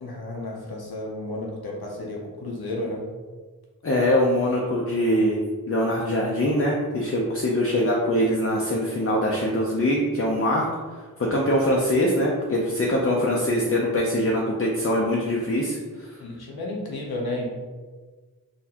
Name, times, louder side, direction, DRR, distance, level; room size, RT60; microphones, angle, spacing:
voice 1, 0.0-3.0 16.2-17.5, left 2 dB, 85° left, -2 dB, 0.7 m, -32 dB
voice 2, 3.8-5.4 5.7-10.7 11.2-16.1, left 1 dB, 40° left, -3 dB, 0.5 m, -23 dB
3.9 x 2.6 x 2.8 m, 1.4 s
wide cardioid pair, 50°, 37 cm